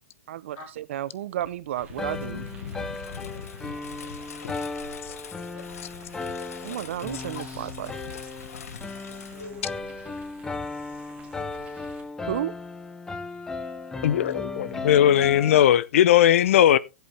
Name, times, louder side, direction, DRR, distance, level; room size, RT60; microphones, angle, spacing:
voice 1, 0.3-2.4 6.6-7.9 12.3-12.5, right 12 dB, 60° right, 0.7 m, -32 dB
Engine, 1.4-10.1, left 7 dB, 85° left, 1.1 m, -42 dB
sound 1, 1.8-12.0, right 4 dB, 15° right, 2.3 m, -51 dB
sound 2, 2.0-15.6, left 3 dB, 5° left, 0.5 m, -36 dB
voice 2, 9.0-10.2 13.9-14.6, left 3 dB, 30° left, 7.3 m, -45 dB
voice 3, 14.0-16.8, left 11 dB, 65° left, 0.7 m, -18 dB
15.5 x 8.0 x 3.4 m
hypercardioid pair, 155°, 8 cm